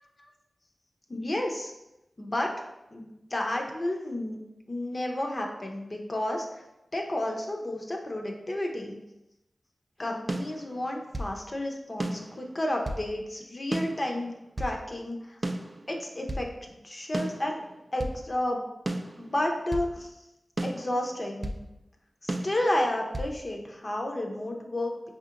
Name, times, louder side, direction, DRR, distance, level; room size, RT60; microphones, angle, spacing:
voice 1, 1.1-1.7 2.2-2.5 2.9-4.4 4.7-6.5 6.9-9.0 10.0-15.4 15.9-17.6 17.9-18.6 19.2-20.2 20.6-21.6 22.2-25.0, left 1 dB, 35° left, 1 dB, 0.5 m, -31 dB
sound 1, 10.3-11.4 12.0-13.1 13.7-14.8 15.4-16.5 17.1-18.2 18.9-19.9 20.6-21.6 22.3-23.3, right 1 dB, 35° right, 0.3 m, -34 dB
5.0 x 2.8 x 2.5 m, 0.93 s
wide cardioid pair, 95°, 0 cm